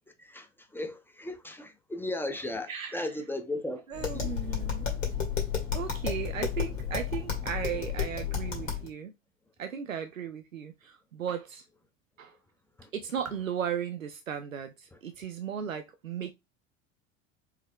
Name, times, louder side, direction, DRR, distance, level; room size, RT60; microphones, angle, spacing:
voice 1, 0.7-3.8 4.1-4.3 12.8-12.9, left 1 dB, 5° left, 0.8 m, -36 dB
voice 2, 2.7-3.1 3.9-4.9 5.7-9.1 9.6-11.6 12.2-12.4 12.9-16.3, right 8 dB, 85° right, 0.6 m, -36 dB
Tap, 3.9-8.9, left 7 dB, 80° left, 2.0 m, -32 dB
4.6 x 3.1 x 3.6 m
figure-of-eight pair, 75°, 39 cm